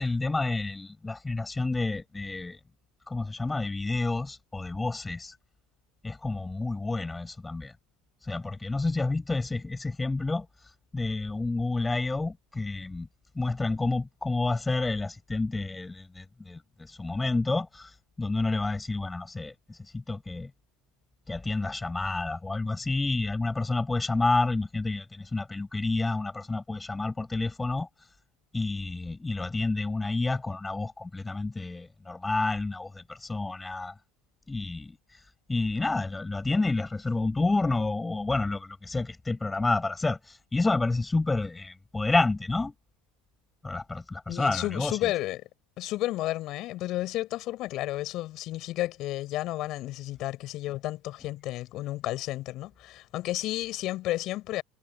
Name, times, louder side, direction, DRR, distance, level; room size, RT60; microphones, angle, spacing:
voice 1, 0.0-2.6 3.1-5.4 6.0-7.7 8.2-10.5 10.9-13.1 13.4-20.5 21.3-27.9 28.5-33.9 34.5-35.0 35.5-42.7 43.6-45.1, left 3 dB, 15° left, 6.8 m, -29 dB
voice 2, 44.3-45.4 45.8-54.6, left 16 dB, 50° left, 7.3 m, -32 dB
hypercardioid pair, 75°, 0 cm